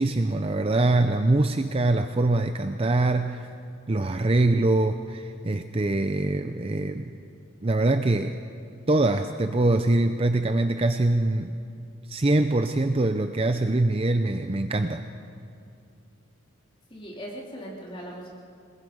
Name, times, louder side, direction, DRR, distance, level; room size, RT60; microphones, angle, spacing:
voice 1, 0.0-3.5 3.9-7.2 7.6-8.4 8.9-11.6 12.1-15.0, right 2 dB, 30° right, 8 dB, 0.6 m, -23 dB
voice 2, 16.9-18.3, equal, 25° left, -3 dB, 3.3 m, -39 dB
27.5 x 20.0 x 5.3 m, 2.6 s
head